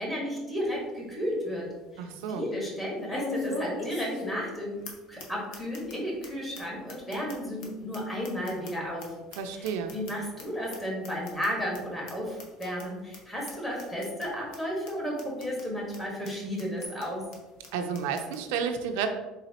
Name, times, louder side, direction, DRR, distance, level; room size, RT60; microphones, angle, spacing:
voice 1, 0.0-1.7 1.9-4.8 5.1-9.1 9.5-17.2, equal, 15° left, -3 dB, 1.4 m, -33 dB
sound 1, 0.7-0.8 1.3-1.4 3.1-4.6 4.8-4.9 5.2-5.3 5.5-5.9 6.2-6.3 6.5-6.6 6.9-9.0 9.3-10.4 10.7-10.8 11.0-11.5 11.7-11.8 12.1-12.2 12.4-12.8 13.1-13.2 13.5-13.6 13.8-14.2 14.5-14.6 14.9-15.0 15.2-15.6 15.9-16.0 16.2-16.3 16.6-17.0 17.3-17.4 17.6-17.7 17.9-18.4, left 2 dB, 70° left, 0.9 m, -38 dB
voice 2, 2.0-2.5 9.4-9.9 17.7-19.1, right 7 dB, 85° right, 6 dB, 0.4 m, -31 dB
4.0 x 3.7 x 2.8 m, 1.2 s
cardioid pair, 130°, 0 cm